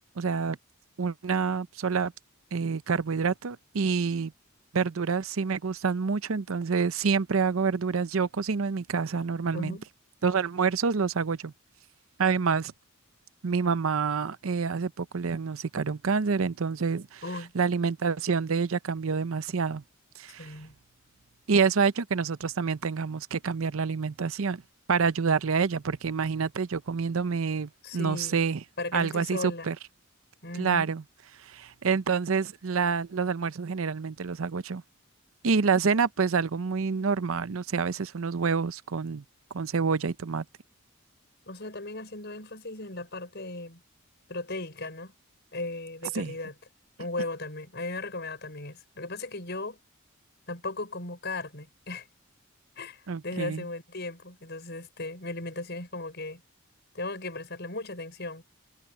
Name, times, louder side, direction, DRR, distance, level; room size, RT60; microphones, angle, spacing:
voice 1, 0.2-0.6 1.0-2.1 2.5-4.3 4.7-9.8 10.2-11.5 12.2-12.7 13.4-17.2 17.5-19.8 20.2-20.5 21.5-24.6 24.9-28.6 28.9-29.8 30.6-31.0 31.4-34.8 35.4-39.2 39.5-40.4 46.1-46.3 53.1-53.6, right 5 dB, 75° right, 0.6 m, -27 dB
voice 2, 9.5-9.9 17.2-17.5 20.4-20.7 27.8-28.4 28.8-29.7 30.4-30.9 41.5-43.8 44.3-45.1 45.5-46.5 47.0-49.8 50.5-52.1 52.8-56.4 56.9-58.4, left 2 dB, 50° left, 5.9 m, -36 dB
head